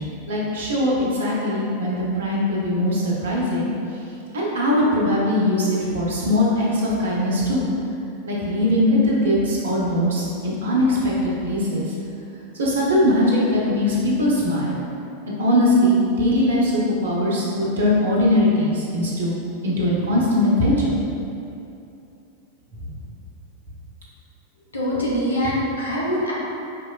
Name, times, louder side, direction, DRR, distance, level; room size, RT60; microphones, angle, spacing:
voice 1, 0.0-3.7 4.3-7.7 8.3-11.9 12.5-14.8 15.3-19.4 19.6-20.9, left 1 dB, 65° right, -4 dB, 0.8 m, -21 dB
voice 2, 24.7-26.3, equal, 75° left, -6 dB, 0.9 m, -23 dB
4.8 x 3.0 x 2.3 m, 2.7 s
figure-of-eight pair, 90°, 0 cm